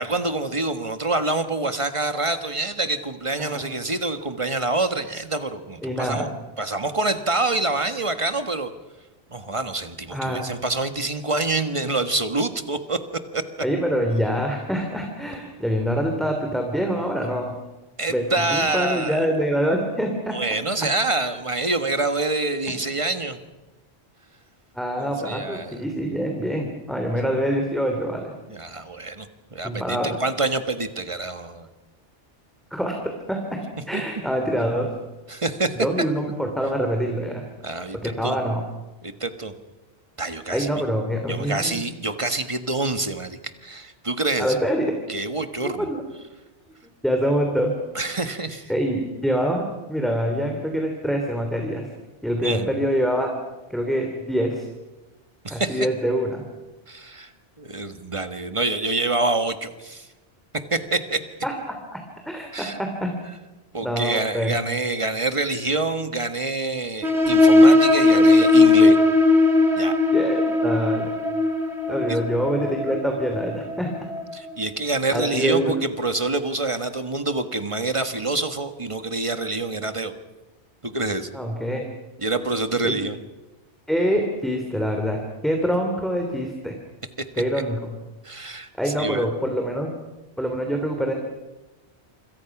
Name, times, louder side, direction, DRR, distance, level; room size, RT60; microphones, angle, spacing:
voice 1, 0.0-6.3 6.6-8.7 9.3-13.0 13.3-13.4 18.0-19.3 20.3-23.4 25.0-25.8 28.5-31.7 33.9-34.0 35.3-35.7 37.6-38.4 39.0-39.5 40.2-40.7 41.3-44.6 45.1-45.9 47.9-48.7 52.4-52.7 55.4-55.9 56.9-57.3 57.6-60.1 60.5-61.2 62.5-62.8 63.7-69.0 69.8-69.9 72.1-72.2 74.3-80.1 80.8-81.3 82.2-83.2 87.5-87.6 88.2-89.2, right 2 dB, 25° right, 9 dB, 1.6 m, -26 dB
voice 2, 5.8-6.3 10.1-10.4 13.6-17.6 18.1-20.4 24.7-28.3 29.6-30.2 32.7-32.9 33.3-33.4 33.9-34.9 35.8-37.4 38.0-38.6 40.5-41.8 44.4-44.8 45.6-46.0 47.0-47.7 48.7-51.9 52.2-53.3 53.7-54.7 55.5-56.4 61.4-61.5 61.9-62.0 62.2-63.1 63.8-64.6 70.1-71.1 71.9-73.9 75.1-75.7 81.3-81.9 82.8-83.0 83.9-86.7 87.4-87.9 88.7-89.9 90.4-91.1, equal, ahead, 2 dB, 2.9 m, -25 dB
sound 1, 67.0-74.3, left 2 dB, 75° right, 3.1 m, -18 dB
27.5 x 26.0 x 6.1 m, 1.1 s
omnidirectional pair, 1.2 m